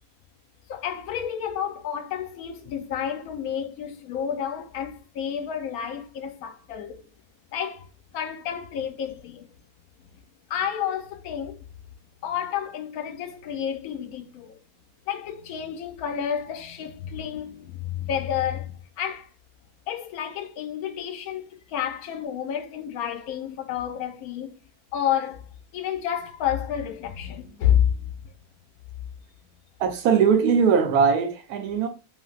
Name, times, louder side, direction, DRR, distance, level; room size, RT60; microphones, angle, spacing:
voice 1, 0.7-7.0 7.5-9.5 10.1-10.2 10.5-11.6 12.2-14.6 15.1-19.3 19.9-24.6 24.9-28.3, left 9 dB, 75° left, 1.0 m, -30 dB
voice 2, 29.8-31.9, right 6 dB, 85° right, 1.1 m, -20 dB
3.3 x 2.5 x 2.4 m
omnidirectional pair, 1.6 m